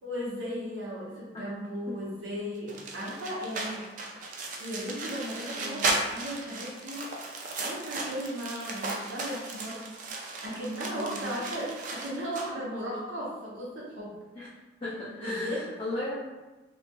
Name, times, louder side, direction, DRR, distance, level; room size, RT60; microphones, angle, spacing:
voice 1, 0.0-3.8 4.6-7.1 7.6-9.8 10.4-14.1 15.2-15.6, equal, 85° right, -6 dB, 0.7 m, -36 dB
sound 1, 2.7-12.5, right 2 dB, 45° right, 0.3 m, -35 dB
voice 2, 5.6-5.9 10.9-11.4 14.4-14.5 14.8-16.1, left 1 dB, 25° left, -8 dB, 0.4 m, -36 dB
2.6 x 2.3 x 2.2 m, 1.2 s
head